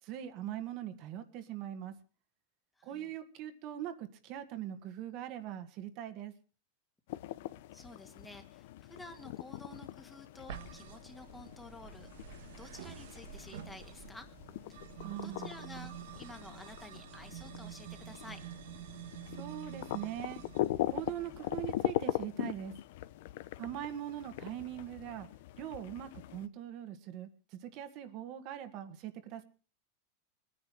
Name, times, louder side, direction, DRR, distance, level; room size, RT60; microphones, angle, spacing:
voice 1, 0.0-1.9 2.8-6.3 15.0-15.5 19.4-20.4 20.9-22.8 23.6-25.3 25.6-29.4, right 11 dB, 45° right, 8 dB, 1.7 m, -41 dB
voice 2, 2.8-3.1 7.7-12.1 12.5-14.3 14.7-14.8 15.2-18.4, left 2 dB, 5° left, 6 dB, 1.9 m, -51 dB
sound 1, 7.1-26.5, left 15 dB, 65° left, 0.8 m, -41 dB
sound 2, 10.5-21.8, right 11 dB, 75° right, 1.6 m, -49 dB
20.0 x 9.9 x 6.1 m, 0.39 s
supercardioid pair, 150°, 0 cm